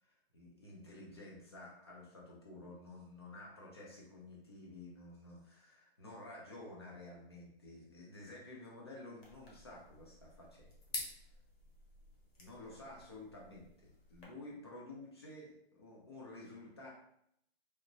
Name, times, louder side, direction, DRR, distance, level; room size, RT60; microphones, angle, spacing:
voice 1, 0.0-10.8 12.4-16.9, left 2 dB, 25° left, -3 dB, 0.5 m, -52 dB
sound 1, 9.2-14.2, left 2 dB, 75° left, 1.1 m, -50 dB
3.0 x 2.1 x 2.5 m, 0.73 s
hypercardioid pair, 165°, 31 cm